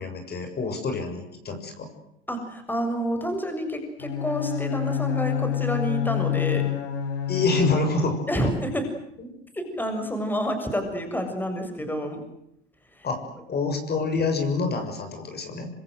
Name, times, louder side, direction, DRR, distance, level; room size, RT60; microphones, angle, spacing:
voice 1, 0.0-1.9 7.3-8.2 13.0-13.2 13.5-15.7, left 3 dB, 30° left, 6 dB, 6.8 m, -27 dB
voice 2, 2.3-6.7 8.3-8.9 9.5-12.2 12.9-13.1, equal, 5° left, 6 dB, 7.0 m, -28 dB
Bowed string instrument, 4.0-8.2, left 10 dB, 65° left, 7.6 m, -27 dB
27.0 x 26.0 x 8.0 m, 0.79 s
hypercardioid pair, 90°, 33 cm